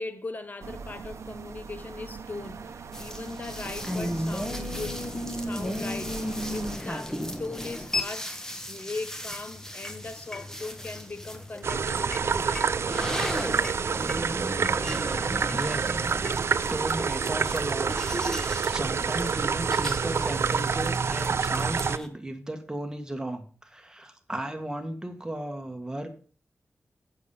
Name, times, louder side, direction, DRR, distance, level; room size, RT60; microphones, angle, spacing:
voice 1, 0.0-12.7, left 3 dB, 40° left, 1.0 m, -39 dB
sound 1, 0.6-6.8, right 5 dB, 90° right, 0.7 m, -41 dB
sound 2, 2.9-22.1, left 1 dB, 10° left, 1.3 m, -35 dB
sound 3, 11.6-22.0, right 5 dB, 65° right, 0.4 m, -27 dB
voice 2, 15.5-16.0 16.7-17.9 18.6-26.1, right 1 dB, 15° right, 1.6 m, -35 dB
8.1 x 6.8 x 5.6 m
wide cardioid pair, 85°, 5 cm